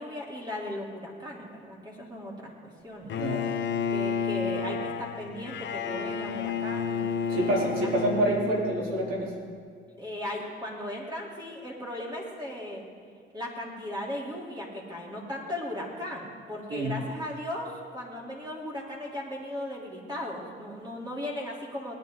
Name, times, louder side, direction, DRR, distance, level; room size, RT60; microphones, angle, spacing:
voice 1, 0.0-3.1 3.9-8.1 10.0-12.8 13.3-21.9, left 1 dB, 20° right, -3 dB, 3.4 m, -37 dB
Bowed string instrument, 3.1-9.2, left 6 dB, 65° left, 0.8 m, -31 dB
voice 2, 3.2-3.5 7.3-9.3 16.7-17.0, right 1 dB, 85° right, -3 dB, 3.7 m, -27 dB
19.0 x 10.5 x 3.9 m, 2.2 s
cardioid pair, 90°, 20 cm